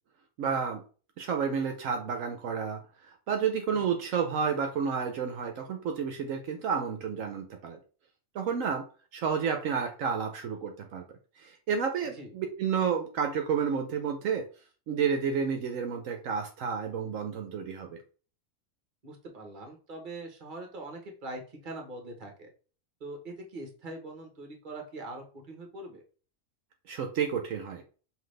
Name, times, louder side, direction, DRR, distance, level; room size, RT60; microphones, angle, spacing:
voice 1, 0.4-0.8 1.2-2.8 3.1-7.8 8.3-8.8 9.1-11.0 11.4-14.4 14.9-18.0 26.9-27.8, right 6 dB, 75° right, 4 dB, 1.0 m, -30 dB
voice 2, 19.0-22.5 23.0-26.0, right 2 dB, 40° right, 3 dB, 1.2 m, -42 dB
5.8 x 2.7 x 3.3 m, 0.38 s
omnidirectional pair, 1.4 m